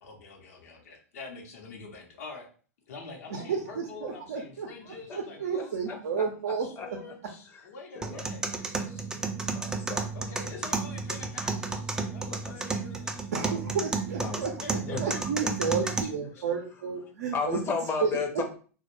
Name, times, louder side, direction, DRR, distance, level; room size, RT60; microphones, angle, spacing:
voice 1, 0.0-2.5 2.9-5.8 6.6-9.1 10.1-13.3 14.6-15.2 15.6-16.0 16.3-16.4, left 4 dB, 70° left, 1 dB, 0.8 m, -45 dB
voice 2, 3.3-7.0 13.3-17.6 18.0-18.4, right 6 dB, 75° right, 2 dB, 0.5 m, -32 dB
voice 3, 5.9-6.9 7.9-8.3 9.5-10.1 12.3-12.8 14.2-14.5 14.9-15.5 17.3-18.4, left 4 dB, 30° left, 4 dB, 0.6 m, -34 dB
sound 1, 8.0-16.0, right 3 dB, 10° right, 0.3 m, -32 dB
2.2 x 2.1 x 3.0 m, 0.40 s
hypercardioid pair, 105°, 8 cm